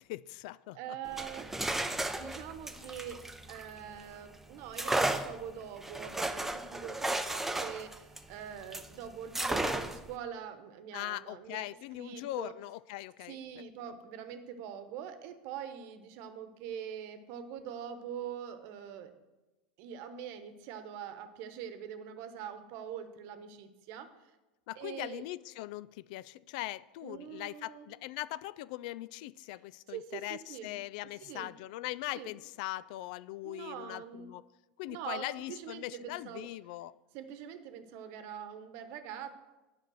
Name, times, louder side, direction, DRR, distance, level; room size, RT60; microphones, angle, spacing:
voice 1, 0.0-0.8 10.9-13.4 24.7-34.4 34.8-36.9, left 16 dB, 65° left, 0.3 m, -41 dB
voice 2, 0.7-1.6 2.2-12.5 13.3-19.1 19.8-24.3 24.8-25.2 27.0-27.9 29.9-30.8 31.2-31.5 32.1-32.3 33.4-34.3 34.9-36.5 37.1-39.3, right 8 dB, 60° right, 1.0 m, -44 dB
sound 1, 1.0-4.1 4.7-8.9 9.3-10.1, right 1 dB, 5° right, 0.6 m, -34 dB
9.1 x 5.3 x 6.3 m
hypercardioid pair, 95°, 5 cm